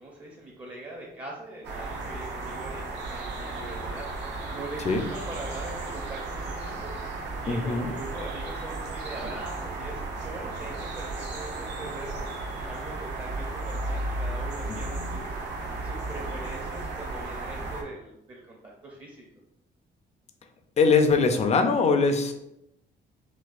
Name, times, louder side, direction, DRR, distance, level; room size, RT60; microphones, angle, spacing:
voice 1, 0.0-4.1 4.5-6.9 7.4-12.3 12.5-15.4 15.8-19.3, right 1 dB, 30° right, -2 dB, 0.6 m, -41 dB
sound 1, 1.6-17.8, right 2 dB, 75° right, 0.7 m, -34 dB
voice 2, 7.5-7.9 15.0-15.1 20.8-22.3, left 4 dB, 40° left, 6 dB, 0.4 m, -22 dB
4.0 x 2.4 x 2.4 m, 0.82 s
cardioid pair, 120°, 18 cm